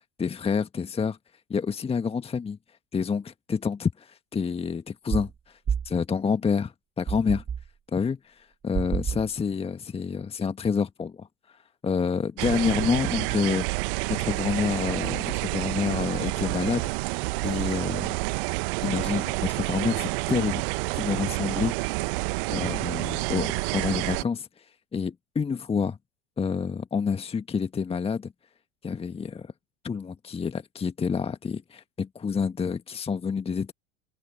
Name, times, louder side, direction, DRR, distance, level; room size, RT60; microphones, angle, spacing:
voice 1, 0.2-1.2 1.5-2.6 2.9-5.6 5.8-7.4 7.9-13.7 14.1-18.1 18.8-20.6 20.9-21.8 22.5-26.0 26.4-28.3 28.8-29.5 29.8-33.7, left 6 dB, 15° left, 1.6 m, -28 dB
sound 1, 5.1-5.3 5.7-6.0 7.1-7.7 8.7-9.3, right 7 dB, 20° right, 1.7 m, -29 dB
sound 2, 12.4-24.2, right 29 dB, 50° right, 1.4 m, -29 dB
open air
figure-of-eight pair, 75°, 34 cm